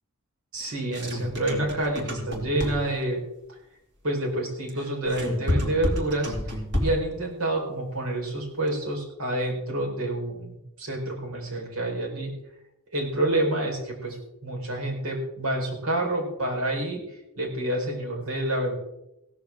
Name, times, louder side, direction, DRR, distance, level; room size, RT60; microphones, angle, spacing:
voice 1, 0.5-3.2 3.5-3.6 4.0-6.3 6.8-12.3 12.9-17.0 17.4-18.7, right 1 dB, 85° right, 0 dB, 4.3 m, -28 dB
sound 1, 0.6-3.0 4.7-7.1, left 1 dB, 55° right, 2.9 m, -29 dB
16.5 x 13.5 x 3.6 m, 0.88 s
head